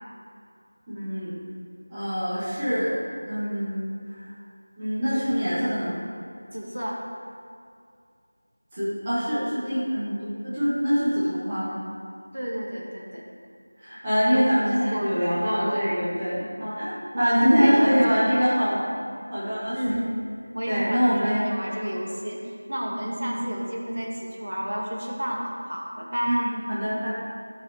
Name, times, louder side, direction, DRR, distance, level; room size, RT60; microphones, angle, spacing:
voice 1, 0.9-1.4 1.9-3.0 3.2-4.3 4.8-6.0 8.7-11.8 13.8-18.9 19.3-20.1 20.7-21.5 23.3-23.4 26.2-27.1, equal, 10° right, -14 dB, 1.5 m, -24 dB
voice 2, 6.5-7.0 12.3-13.3 14.3-14.4 14.9-15.1 17.1-18.5 19.7-20.0 20.5-22.4 22.7-26.4, equal, 90° right, -1 dB, 1.9 m, -30 dB
12.5 x 5.5 x 4.2 m, 2.3 s
figure-of-eight pair, 180°, 0 cm